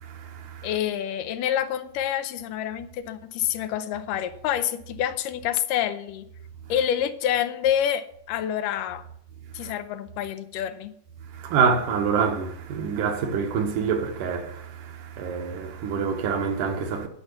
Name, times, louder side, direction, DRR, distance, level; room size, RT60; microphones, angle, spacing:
voice 1, 0.0-0.7 9.6-9.7 11.3-17.1, right 6 dB, 75° right, 2.7 m, -26 dB
voice 2, 0.6-6.3 6.7-9.0 9.5-11.0, left 10 dB, 85° left, 2.3 m, -27 dB
10.0 x 5.9 x 6.8 m
omnidirectional pair, 3.8 m